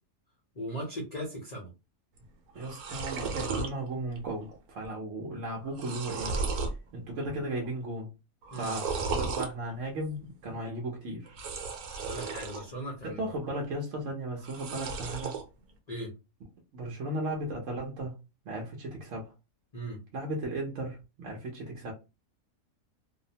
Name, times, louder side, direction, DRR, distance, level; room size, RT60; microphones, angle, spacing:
voice 1, 0.5-1.7 8.5-8.7 12.0-13.2 15.9-16.1 19.7-20.0, right 1 dB, 40° left, -2 dB, 0.6 m, -38 dB
sound 1, 2.2-2.3 2.5-3.7 4.2-4.6 4.8-4.9 5.5-6.8 7.2-7.7 8.4-9.5 11.3-12.6 13.0-13.7 14.4-15.4, right 4 dB, 85° right, 1.2 m, -35 dB
voice 2, 2.5-6.3 6.9-8.1 8.5-11.3 13.0-15.3 16.7-18.1 18.4-19.3 20.1-21.9, right 1 dB, 60° right, 0 dB, 1.0 m, -35 dB
2.7 x 2.0 x 2.7 m, 0.27 s
omnidirectional pair, 1.5 m